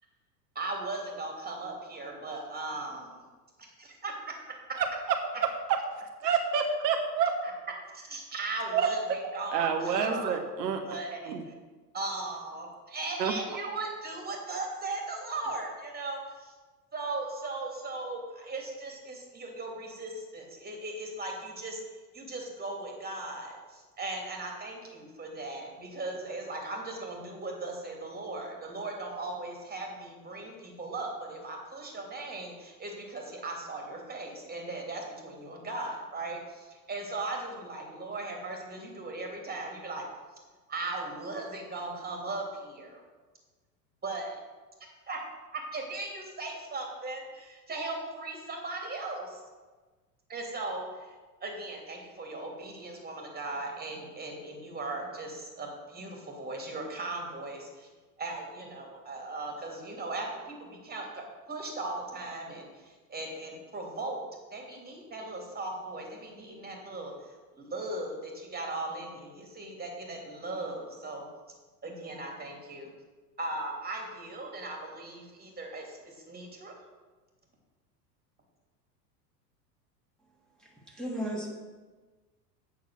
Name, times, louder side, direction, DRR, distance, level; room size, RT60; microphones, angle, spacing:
voice 1, 0.5-3.2 3.8-4.1 7.4-7.5 7.9-10.3 10.8-11.5 11.9-16.5 16.9-40.1 40.7-43.0 44.0-44.4 44.8-45.2 45.5-49.4 50.3-51.2 51.4-57.9 58.2-64.2 64.5-71.2 71.8-72.9 73.4-76.7, right 2 dB, 20° right, 1 dB, 2.8 m, -38 dB
voice 2, 5.4-5.8 6.2-7.4 8.7-8.9 9.5-10.8 11.2-11.4 13.2-13.3, right 7 dB, 75° right, 4 dB, 1.2 m, -28 dB
voice 3, 80.6-81.5, equal, ahead, -3 dB, 2.6 m, -35 dB
8.5 x 6.6 x 6.4 m, 1.3 s
hypercardioid pair, 90°, 49 cm